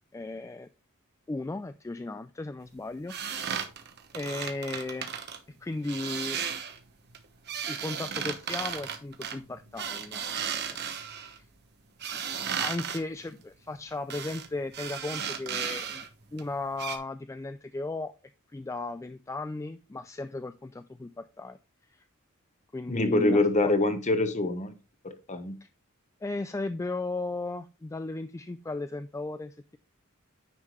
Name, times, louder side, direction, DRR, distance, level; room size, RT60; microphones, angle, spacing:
voice 1, 0.1-0.7 1.3-3.1 4.1-5.2 5.6-6.4 7.7-11.4 12.1-12.2 12.5-16.0 16.3-18.1 18.5-21.6 21.9-22.1 22.7-23.7 25.6-25.7 26.2-29.8, left 2 dB, 15° left, 0.3 m, -36 dB
sound 1, 3.1-5.4 5.8-6.8 7.1-11.4 12.0-13.0 14.1-14.5 14.7-16.1 16.4-16.5 16.8-17.0, right 7 dB, 50° right, 1.1 m, -35 dB
voice 2, 22.9-24.7 25.0-25.5, left 2 dB, 35° left, 1.1 m, -25 dB
9.7 x 5.6 x 3.1 m
head